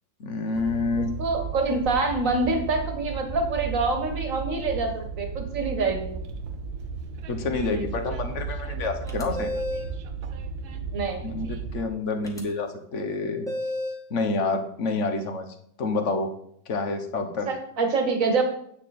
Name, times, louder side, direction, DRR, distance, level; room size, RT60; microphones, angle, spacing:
voice 1, 0.2-1.1 7.3-9.5 11.2-13.5 14.1-15.5 15.8-16.3 16.7-17.5, left 3 dB, 45° left, 7 dB, 1.2 m, -28 dB
Train, 0.6-11.8, right 5 dB, 80° right, 1.6 m, -34 dB
voice 2, 1.2-6.2 10.9-11.2 17.5-18.4, right 3 dB, 45° right, 4 dB, 1.9 m, -26 dB
sound 1, 9.1-10.0 12.2-12.4 13.5-14.1, left 1 dB, ahead, 1.3 m, -31 dB
10.0 x 8.5 x 4.3 m, 0.68 s
omnidirectional pair, 2.1 m